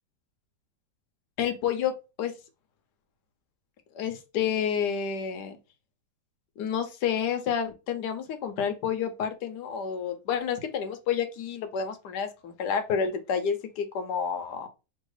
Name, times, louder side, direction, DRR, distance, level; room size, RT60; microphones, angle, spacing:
voice 1, 1.4-1.9 2.2-2.3 3.9-5.6 6.6-14.7, left 7 dB, 80° left, 7 dB, 1.3 m, -29 dB
5.3 x 2.9 x 3.2 m, 0.29 s
omnidirectional pair, 1.8 m